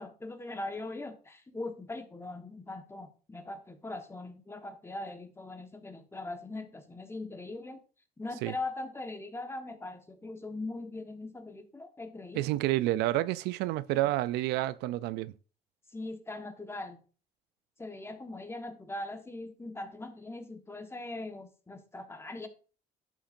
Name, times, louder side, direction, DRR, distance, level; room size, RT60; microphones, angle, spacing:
voice 1, 0.0-7.8 8.2-12.4 15.9-17.0 17.8-22.5, left 2 dB, 15° left, 1.3 m, -41 dB
voice 2, 12.4-15.3, right 16 dB, 85° right, 0.4 m, -29 dB
11.0 x 7.2 x 2.6 m
cardioid pair, 110°, 17 cm